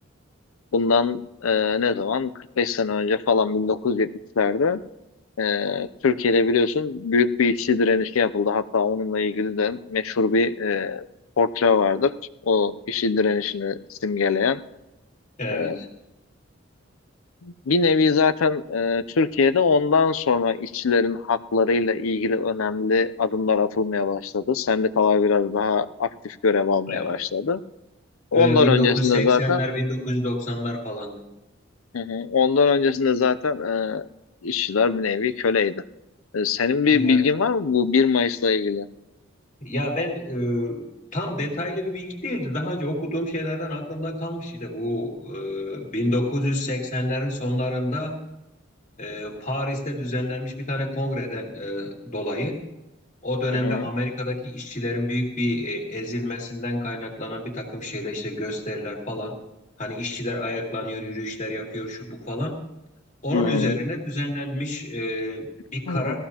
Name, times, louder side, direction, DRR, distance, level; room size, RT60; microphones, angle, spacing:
voice 1, 0.7-2.3 2.6-4.1 4.4-4.8 5.4-11.0 11.4-12.1 12.4-14.6 15.5-15.8 17.4-27.6 28.3-29.6 31.9-34.0 34.4-35.8 36.3-38.9 53.5-53.9 63.3-63.8 65.9-66.2, left 5 dB, 90° left, 12 dB, 0.5 m, -22 dB
voice 2, 15.4-15.9 26.9-27.1 28.3-31.2 36.9-37.2 39.6-48.2 49.0-52.6 53.2-59.4 59.8-62.6 63.2-66.2, left 1 dB, 35° left, 0 dB, 2.3 m, -28 dB
19.0 x 14.5 x 2.9 m, 0.95 s
head